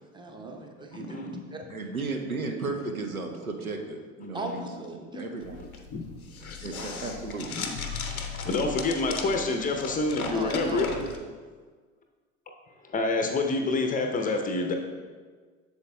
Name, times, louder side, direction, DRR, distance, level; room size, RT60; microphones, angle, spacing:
voice 1, 0.1-1.6 4.3-5.5 10.3-11.2, right 2 dB, 10° right, 2 dB, 0.8 m, -38 dB
voice 2, 0.9-1.4 4.6-4.7 5.1-5.2 5.6-6.0 6.4-7.0 7.5-7.7 8.0-10.9 12.8-14.7, left 3 dB, 20° left, 4 dB, 0.6 m, -28 dB
voice 3, 1.7-5.6 6.6-7.5, right 3 dB, 85° right, 4 dB, 0.7 m, -34 dB
sound 1, 5.4-11.2, left 4 dB, 90° left, 0.6 m, -36 dB
8.0 x 7.0 x 2.2 m, 1.5 s
figure-of-eight pair, 70°, 41 cm